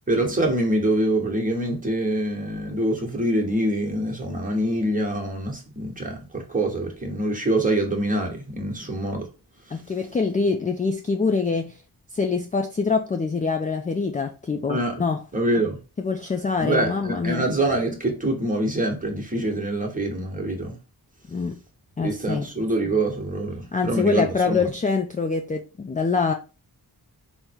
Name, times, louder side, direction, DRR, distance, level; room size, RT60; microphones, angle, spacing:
voice 1, 0.1-9.3 9.7-9.8 14.7-15.0 15.3-15.8 16.6-20.8 22.0-24.6, right 1 dB, 20° right, 1.1 m, -25 dB
voice 2, 9.7-11.8 12.1-15.2 16.0-17.5 21.3-21.6 22.0-22.5 23.7-26.3, left 4 dB, 20° left, 0.4 m, -25 dB
3.6 x 2.1 x 4.4 m
wide cardioid pair, 80°, 39 cm